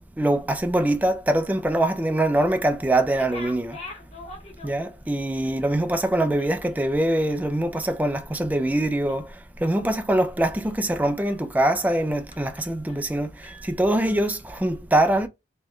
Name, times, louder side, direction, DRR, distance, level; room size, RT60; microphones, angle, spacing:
voice 1, 0.2-3.8 4.6-15.3, right 1 dB, 10° right, 0.3 m, -23 dB
sound 1, 3.0-5.1 5.4-5.6 5.9-8.1 8.4-8.7 9.1-9.7 10.2-10.9 11.3-11.4 11.8-12.0 12.3-13.1 13.4-14.6, left 2 dB, 35° left, 1.1 m, -45 dB
3.0 x 2.2 x 3.6 m
head